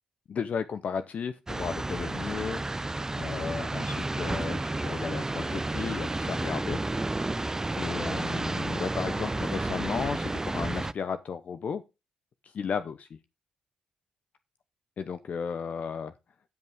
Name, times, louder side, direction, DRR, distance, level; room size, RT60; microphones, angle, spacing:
voice 1, 0.3-2.6 3.2-6.8 7.8-11.8 12.4-13.1 15.0-16.1, left 6 dB, 55° left, 0.7 m, -34 dB
sound 1, 1.5-10.9, right 2 dB, 20° right, 0.5 m, -31 dB
16.0 x 5.5 x 3.6 m
hypercardioid pair, 45°, 3 cm